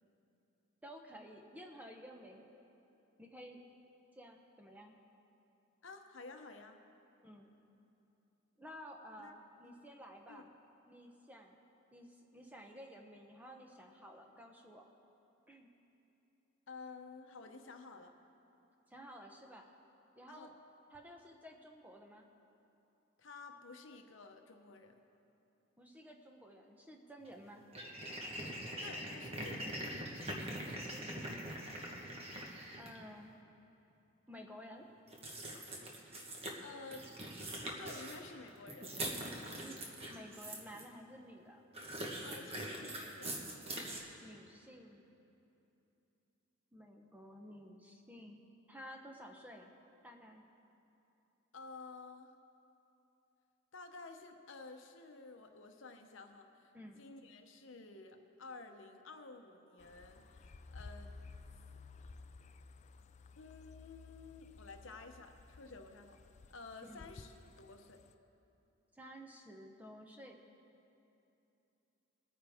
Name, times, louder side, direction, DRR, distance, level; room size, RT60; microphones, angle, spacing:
voice 1, 0.8-2.5 3.2-3.6 4.1-4.9 7.2-7.5 8.6-10.5 10.9-11.6 11.9-14.9 15.5-15.7 18.9-19.7 20.1-20.5 20.9-22.3 25.8-27.7 30.8-31.7 32.8-33.3 34.3-34.9 39.6-41.6 44.2-45.0 46.7-48.4 48.7-49.7 50.0-50.4 56.7-57.0 66.9-67.1 68.9-70.4, equal, 5° right, 2 dB, 0.8 m, -53 dB
voice 2, 5.8-6.8 9.2-9.3 9.6-9.7 10.3-10.5 16.7-18.2 20.3-20.5 23.2-25.0 28.8-29.8 36.6-37.1 37.8-39.0 42.2-43.4 51.5-52.3 53.7-56.7 57.0-61.2 63.4-66.2 66.5-68.0, left 3 dB, 60° left, 5 dB, 0.9 m, -52 dB
sound 1, 27.3-27.4 27.7-33.0 35.1-36.5 36.9-40.8 41.7-44.0, right 1 dB, 30° right, 1.3 m, -43 dB
sound 2, 59.8-68.1, left 3 dB, 35° left, 0.3 m, -55 dB
21.5 x 9.4 x 3.6 m, 2.9 s
head